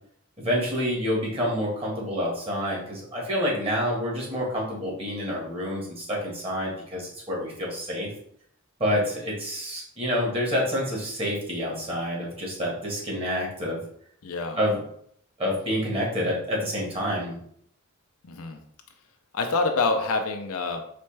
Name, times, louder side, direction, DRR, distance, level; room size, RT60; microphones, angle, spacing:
voice 1, 0.4-8.1 8.8-13.8 14.6-14.8 15.4-17.4, equal, 30° right, -3 dB, 1.4 m, -28 dB
voice 2, 14.2-14.6 18.2-18.6 19.3-20.8, left 3 dB, 85° left, 4 dB, 0.5 m, -26 dB
4.3 x 3.2 x 3.2 m, 0.66 s
head